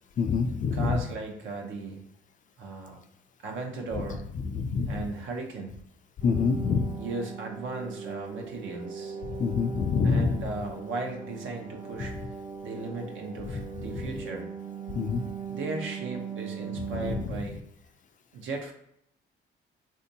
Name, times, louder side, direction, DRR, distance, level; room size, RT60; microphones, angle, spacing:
voice 1, 0.2-1.0 4.5-5.1 6.2-6.9 9.2-10.4 12.0-12.1 13.5-13.6 13.9-14.1 14.9-15.2 16.9-17.4, left 5 dB, 40° left, 8 dB, 0.4 m, -27 dB
voice 2, 0.7-2.0 2.6-3.0 3.4-4.3 4.9-5.7 7.0-9.2 10.0-12.1 12.6-14.5 15.5-17.6 18.3-18.7, right 3 dB, 80° right, 2 dB, 0.8 m, -36 dB
sound 1, 6.2-17.2, right 7 dB, 45° right, 0.6 m, -39 dB
3.5 x 2.6 x 2.7 m, 0.74 s
cardioid pair, 90°, 20 cm